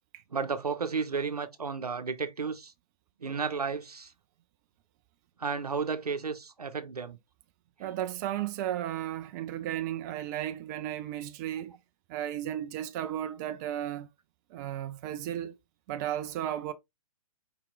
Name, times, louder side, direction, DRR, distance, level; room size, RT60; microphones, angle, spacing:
voice 1, 0.3-2.7 3.2-4.1 5.4-7.2, right 5 dB, 90° right, 0.8 m, -33 dB
voice 2, 7.8-11.8 12.1-14.1 14.5-15.6 15.9-16.7, right 11 dB, 30° right, 0.5 m, -34 dB
4.9 x 2.9 x 3.5 m
figure-of-eight pair, 125°, 19 cm